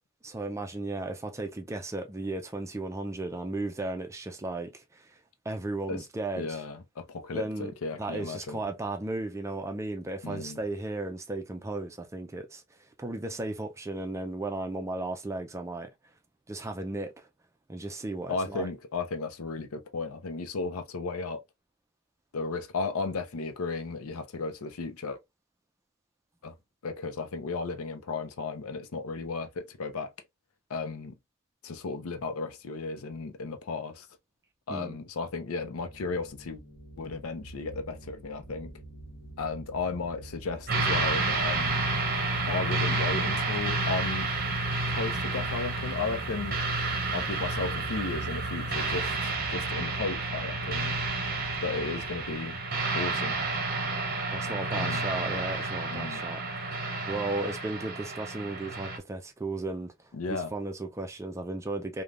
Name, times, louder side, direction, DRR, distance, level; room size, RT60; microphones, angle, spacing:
voice 1, 0.2-5.1 5.5-6.6 7.3-7.7 8.0-12.6 13.0-15.9 16.5-17.1 17.7-18.7 34.7-35.0 54.3-56.4 57.1-59.9 60.3-62.0, right 2 dB, 15° right, 0.4 m, -35 dB
voice 2, 6.3-8.6 10.2-10.6 18.3-21.4 22.3-25.2 26.4-26.5 26.8-30.1 30.7-31.1 31.6-34.1 34.7-36.6 37.0-38.7 39.4-41.9 42.5-44.3 45.0-46.6 47.1-49.1 49.5-50.9 51.6-52.6 52.9-53.4 54.7-55.0 55.9-56.2 60.1-60.5, left 4 dB, 80° left, 0.5 m, -34 dB
sound 1, 35.6-52.4, right 2 dB, 50° left, 1.1 m, -44 dB
sound 2, 40.7-59.0, right 3 dB, 45° right, 0.7 m, -30 dB
3.2 x 2.2 x 2.4 m
head